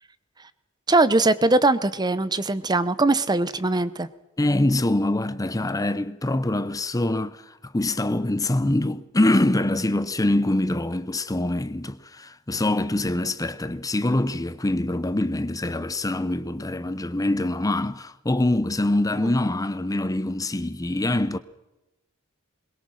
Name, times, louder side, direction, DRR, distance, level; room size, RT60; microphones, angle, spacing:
voice 1, 0.9-4.1, right 2 dB, 20° right, 0.8 m, -21 dB
voice 2, 4.4-21.4, left 1 dB, 15° left, 0.7 m, -24 dB
22.0 x 21.5 x 6.4 m
head